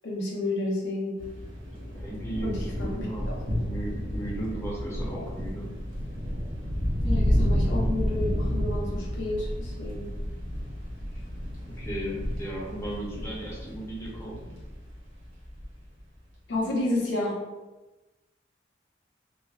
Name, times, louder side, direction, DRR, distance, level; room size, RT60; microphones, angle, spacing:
voice 1, 0.0-1.2 2.4-3.4 7.0-10.1 16.5-17.4, left 2 dB, 70° left, -4 dB, 0.8 m, -31 dB
sound 1, 1.2-15.7, equal, 85° right, 0.8 m, -30 dB
voice 2, 1.9-5.7 11.6-14.6, right 1 dB, 15° left, -5 dB, 0.6 m, -36 dB
3.3 x 2.1 x 2.4 m, 1.1 s
head